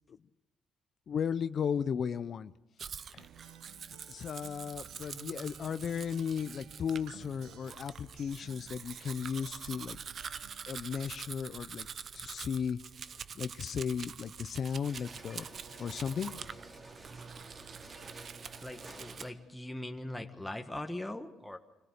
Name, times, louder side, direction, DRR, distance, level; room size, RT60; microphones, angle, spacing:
voice 1, 1.1-2.5 3.1-3.2 4.1-10.0 10.7-11.9 12.1-12.8 13.3-15.5 15.8-16.4, left 7 dB, 50° left, 0.6 m, -35 dB
Domestic sounds home sounds, 2.8-19.3, right 7 dB, 50° right, 0.7 m, -46 dB
Acoustic guitar, 3.2-11.2, right 10 dB, 80° right, 1.1 m, -56 dB
sound 1, 14.8-19.6, right 2 dB, 30° right, 2.9 m, -51 dB
voice 2, 18.6-21.6, left 1 dB, 5° left, 1.4 m, -41 dB
25.0 x 17.0 x 6.7 m
cardioid pair, 95°, 0 cm